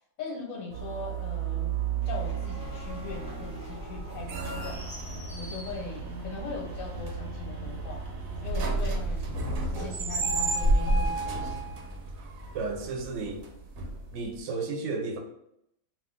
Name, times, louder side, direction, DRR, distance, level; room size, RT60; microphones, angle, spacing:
voice 1, 0.2-1.7 2.1-4.8 5.4-8.0 8.4-9.3 9.7-11.8, left 4 dB, 90° left, -2 dB, 1.1 m, -40 dB
sound 1, 0.7-14.4, right 3 dB, 90° right, 1.0 m, -32 dB
sound 2, 2.0-13.0, equal, 10° right, 0.4 m, -44 dB
voice 2, 12.5-13.5 14.1-15.2, right 4 dB, 70° right, 1 dB, 0.9 m, -33 dB
2.5 x 2.3 x 3.6 m, 0.78 s
omnidirectional pair, 1.4 m